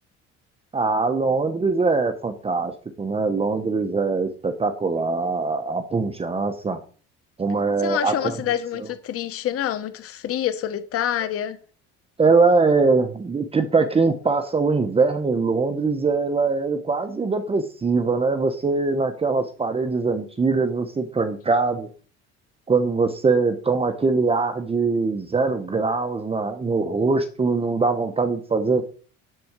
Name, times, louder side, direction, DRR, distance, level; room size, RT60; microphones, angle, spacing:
voice 1, 0.7-2.7 3.0-6.8 7.4-8.4 12.2-21.9 22.7-28.8, right 4 dB, 20° right, 1.0 m, -22 dB
voice 2, 7.8-11.6, left 10 dB, 50° left, 1.1 m, -27 dB
12.0 x 4.3 x 8.0 m
cardioid pair, 130°, 29 cm